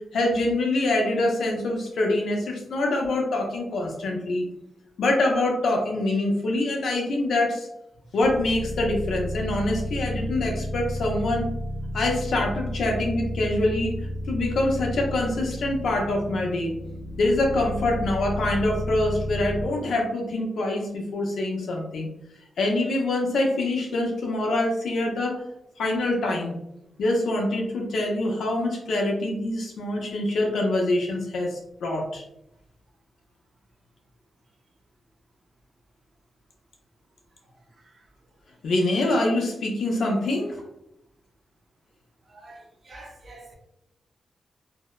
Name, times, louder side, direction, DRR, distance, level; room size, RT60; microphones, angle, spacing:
voice 1, 0.1-4.4 5.0-7.7 8.1-11.5 11.9-16.7 17.2-22.1 22.6-25.4 25.8-26.6 27.0-32.2 38.6-40.6, left 2 dB, 70° left, 1 dB, 0.5 m, -25 dB
sound 1, 8.2-19.7, equal, 80° right, 1.0 m, -32 dB
voice 2, 42.3-43.5, right 2 dB, 35° right, 1 dB, 0.4 m, -46 dB
2.6 x 2.1 x 2.2 m, 0.81 s
wide cardioid pair, 180°, 0 cm